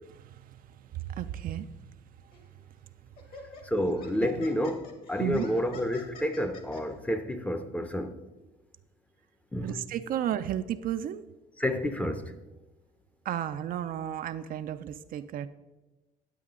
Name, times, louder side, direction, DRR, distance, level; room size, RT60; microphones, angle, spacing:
voice 1, 0.1-0.6 0.9-1.9 4.2-4.3 5.2-5.5 9.6-11.2 13.3-15.5, right 11 dB, 55° right, 0.4 m, -33 dB
Laughter, 2.3-2.5 3.2-6.8, left 3 dB, 60° left, 1.9 m, -48 dB
voice 2, 3.6-8.2 9.5-9.8 11.6-12.3, equal, 10° left, 0.6 m, -30 dB
9.7 x 8.4 x 3.7 m
cardioid pair, 110°, 17 cm